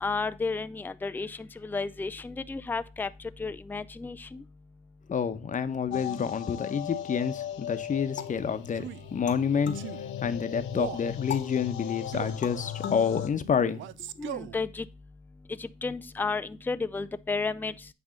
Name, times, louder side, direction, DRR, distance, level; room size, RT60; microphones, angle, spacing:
voice 1, 0.0-3.1 3.4-4.4 14.2-14.9 15.6-17.7, left 4 dB, 10° left, 0.4 m, -32 dB
voice 2, 5.1-13.8, left 6 dB, 40° left, 0.9 m, -29 dB
sound 1, 5.9-13.3, left 10 dB, 85° left, 0.8 m, -38 dB
sound 2, 8.2-10.7 11.3-14.1, left 8 dB, 70° left, 1.2 m, -41 dB
Male speech man speaking, 8.7-9.1 9.7-10.0 10.7-11.1 12.1-12.5 13.7-14.6, right 13 dB, 75° right, 0.5 m, -38 dB
8.8 x 3.4 x 5.2 m
cardioid pair, 90°, 20 cm